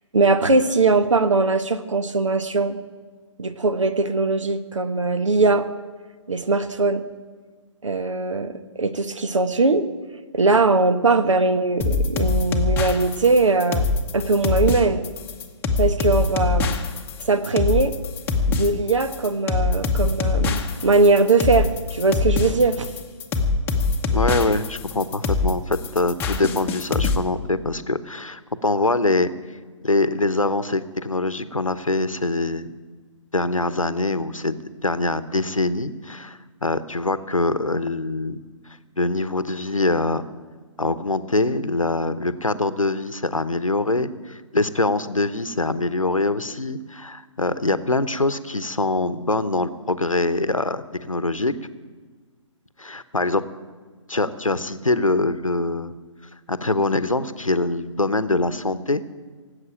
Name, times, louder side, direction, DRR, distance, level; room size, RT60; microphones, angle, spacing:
voice 1, 0.1-2.8 3.4-5.7 6.3-7.0 7.8-9.9 10.3-13.9 14.1-15.0 15.8-16.7 17.2-17.9 18.5-22.9, right 3 dB, 70° right, 11 dB, 1.2 m, -20 dB
sound 1, 11.8-27.2, left 4 dB, 10° left, 0.9 m, -23 dB
voice 2, 24.1-29.3 29.8-32.7 33.3-34.6 34.8-38.4 39.0-40.3 40.8-51.5 52.8-53.4 54.1-55.9 56.5-59.0, left 2 dB, 90° left, 14 dB, 0.9 m, -23 dB
18.0 x 8.1 x 8.9 m, 1.5 s
figure-of-eight pair, 135°, 17 cm